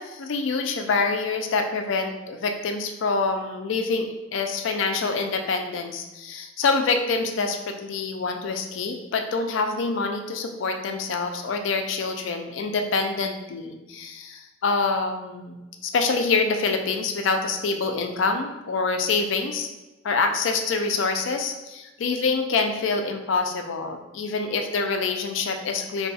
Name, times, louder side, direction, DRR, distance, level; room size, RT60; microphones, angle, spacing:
voice 1, 0.0-19.7 20.0-26.1, left 4 dB, 70° left, 5 dB, 0.4 m, -26 dB
2.7 x 2.3 x 4.0 m, 1.0 s
head